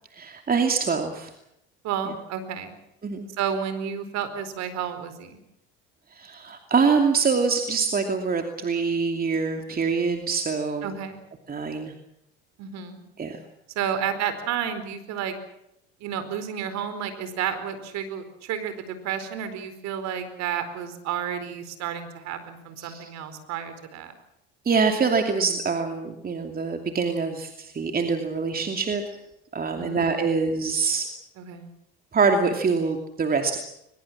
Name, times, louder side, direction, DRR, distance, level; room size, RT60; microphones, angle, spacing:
voice 1, 0.1-1.3 3.0-3.2 6.1-10.9 11.5-11.9 13.2-13.4 22.8-23.1 24.6-29.2 29.5-31.1 32.1-33.6, right 5 dB, 30° right, 5 dB, 2.7 m, -25 dB
voice 2, 1.8-2.7 3.4-5.4 10.8-11.2 12.6-13.0 13.7-15.3 16.0-24.1 29.7-30.5 31.4-31.7, right 8 dB, 60° right, 11 dB, 4.5 m, -31 dB
22.5 x 21.5 x 7.5 m, 0.81 s
hypercardioid pair, 80°, 30 cm